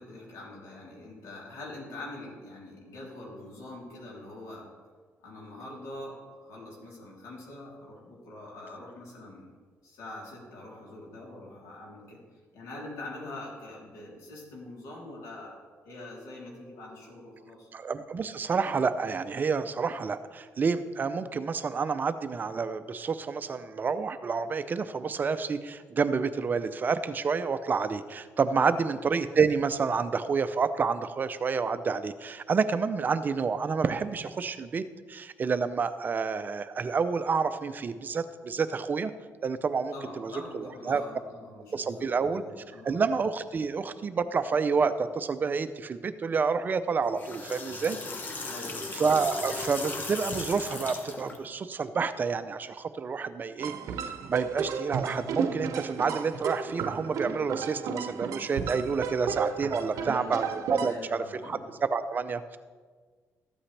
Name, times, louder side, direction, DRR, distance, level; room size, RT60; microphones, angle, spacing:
voice 1, 0.0-4.7 5.2-9.5 9.8-12.2 12.5-15.6 15.8-17.7 28.5-28.7 39.9-43.1 48.5-49.0 59.9-61.7, left 2 dB, 85° left, -3 dB, 3.3 m, -44 dB
voice 2, 17.7-39.1 39.4-41.0 41.7-42.4 42.8-48.0 48.9-53.7 54.1-61.6 61.9-62.6, right 5 dB, 35° right, 12 dB, 0.5 m, -29 dB
sound 1, 47.0-51.4, left 3 dB, 35° left, 1.3 m, -37 dB
sound 2, 53.6-61.0, right 6 dB, 75° right, 0.7 m, -33 dB
13.5 x 8.6 x 3.3 m, 1.5 s
cardioid pair, 120°, 5 cm